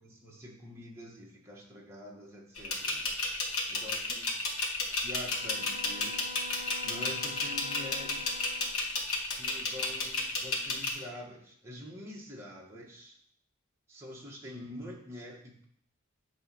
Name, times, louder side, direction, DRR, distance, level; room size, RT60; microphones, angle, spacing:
voice 1, 0.0-3.1 3.7-4.4 5.0-6.3 6.8-8.3 9.4-13.2 13.9-15.6, left 1 dB, 10° right, -3 dB, 1.5 m, -46 dB
sound 1, 2.6-10.9, left 3 dB, 75° left, 1.5 m, -32 dB
Bowed string instrument, 5.3-8.9, left 4 dB, 35° left, 0.5 m, -45 dB
9.1 x 3.2 x 6.1 m, 0.65 s
head